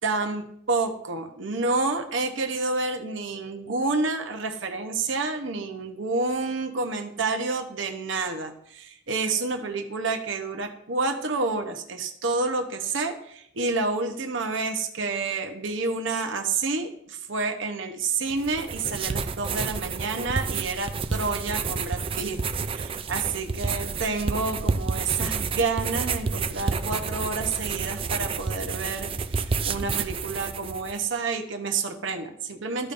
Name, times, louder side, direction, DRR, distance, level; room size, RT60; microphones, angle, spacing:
voice 1, 0.0-22.4 22.7-32.9, right 3 dB, 70° right, 5 dB, 0.9 m, -29 dB
sound 1, 18.3-31.0, right 5 dB, 30° right, 0.4 m, -30 dB
13.5 x 5.0 x 2.6 m, 0.70 s
head